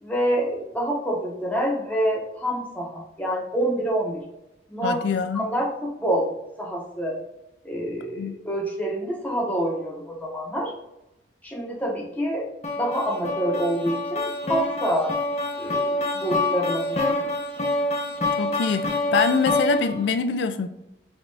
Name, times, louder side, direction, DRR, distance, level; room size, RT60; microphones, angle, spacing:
voice 1, 0.0-4.2 4.7-5.0 5.3-6.3 6.6-7.2 7.6-10.7 11.4-12.5 12.7-15.1 15.6-17.3, equal, 10° left, 0.9 m, -27 dB
voice 2, 4.8-5.5 8.2-8.3 18.4-20.7, left 5 dB, 75° left, 0.3 m, -24 dB
sound 1, 12.6-20.1, left 1 dB, 35° left, 0.7 m, -26 dB
5.2 x 2.5 x 3.3 m
head